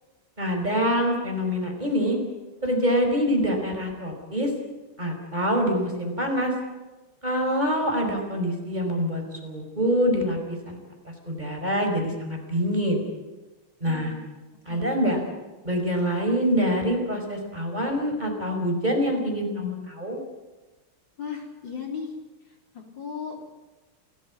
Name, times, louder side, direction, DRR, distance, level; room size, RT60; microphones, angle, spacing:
voice 1, 0.4-2.2 2.6-4.5 5.0-6.5 7.2-10.8 11.2-13.0 13.8-14.1 14.7-15.2 15.6-20.2, equal, 20° right, 2 dB, 5.0 m, -25 dB
voice 2, 13.8-14.2 14.7-15.4 21.2-22.1 22.4-23.4, left 5 dB, 60° left, 2 dB, 4.1 m, -37 dB
28.5 x 18.0 x 8.4 m, 1.2 s
omnidirectional pair, 2.4 m